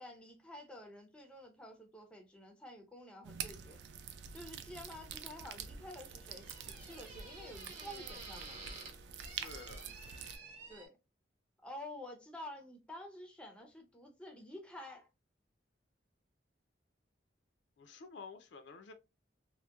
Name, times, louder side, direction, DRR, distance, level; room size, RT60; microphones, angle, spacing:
voice 1, 0.0-3.8 4.3-8.6 10.7-10.9 11.6-15.1, left 1 dB, 5° left, 0.4 m, -50 dB
sound 1, 3.2-10.4, right 7 dB, 65° right, 0.3 m, -47 dB
sound 2, 4.6-10.9, right 3 dB, 40° right, 0.8 m, -52 dB
voice 2, 9.4-9.9 17.8-18.9, left 4 dB, 65° left, 0.4 m, -51 dB
2.7 x 2.1 x 2.3 m
head